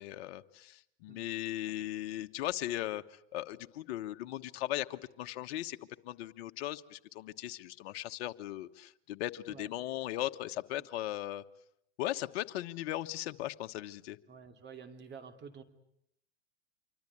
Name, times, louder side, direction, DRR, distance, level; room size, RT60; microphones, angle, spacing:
voice 1, 0.0-5.8 6.0-11.4 12.0-14.2, left 14 dB, 60° left, 8 dB, 1.4 m, -38 dB
voice 2, 14.3-15.6, right 6 dB, 30° right, 7 dB, 2.9 m, -49 dB
26.0 x 24.5 x 8.7 m, 0.72 s
hypercardioid pair, 110°, 35 cm